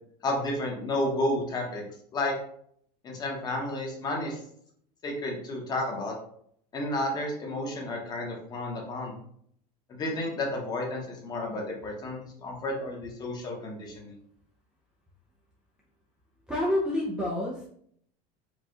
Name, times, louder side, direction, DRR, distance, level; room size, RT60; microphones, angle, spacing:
voice 1, 0.2-1.8 2.1-2.3 3.0-4.4 5.0-6.1 6.7-9.2 9.9-14.1, left 1 dB, 20° left, 0 dB, 1.0 m, -31 dB
voice 2, 16.5-17.7, left 1 dB, 5° right, -5 dB, 0.5 m, -28 dB
4.8 x 2.4 x 3.7 m, 0.66 s
cardioid pair, 165°, 19 cm